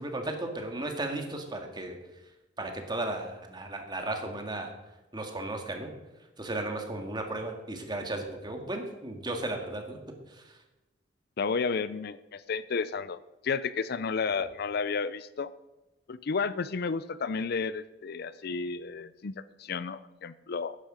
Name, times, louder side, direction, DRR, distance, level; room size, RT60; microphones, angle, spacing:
voice 1, 0.0-2.0 2.6-4.7 5.1-5.9 6.4-10.0 10.3-10.6, right 2 dB, 25° right, 4 dB, 1.9 m, -35 dB
voice 2, 11.4-15.5 16.1-19.3 19.6-20.8, left 5 dB, 55° left, 16 dB, 0.5 m, -32 dB
12.0 x 10.5 x 5.1 m, 1.0 s
head